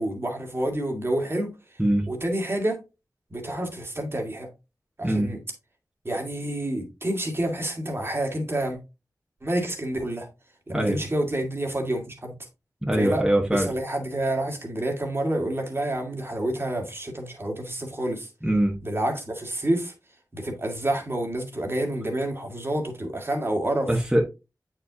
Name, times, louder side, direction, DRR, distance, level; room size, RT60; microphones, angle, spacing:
voice 1, 0.0-1.5 2.1-2.8 3.3-4.5 5.0-5.4 6.1-8.8 9.4-10.3 10.7-12.3 13.0-13.2 13.5-18.3 18.8-19.9 20.3-23.9, right 1 dB, 35° right, 1.9 m, -28 dB
voice 2, 12.8-13.7 18.4-18.8 23.9-24.2, right 1 dB, 10° right, 1.3 m, -22 dB
8.1 x 4.8 x 2.7 m
wide cardioid pair, 60°, 7 cm